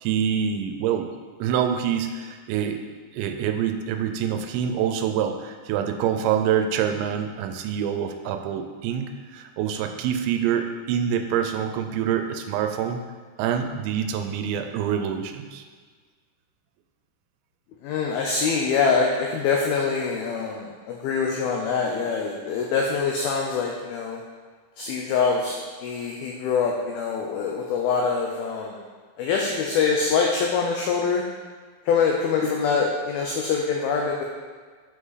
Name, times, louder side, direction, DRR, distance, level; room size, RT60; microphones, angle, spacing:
voice 1, 0.0-1.1 1.4-2.8 3.1-13.0 13.4-15.6, right 8 dB, 90° right, 6 dB, 2.9 m, -26 dB
voice 2, 17.8-24.2 24.8-25.6 25.8-28.7 29.2-31.2 31.9-34.2, left 5 dB, 90° left, 0 dB, 2.1 m, -24 dB
8.1 x 5.1 x 4.0 m, 1.6 s
omnidirectional pair, 5.1 m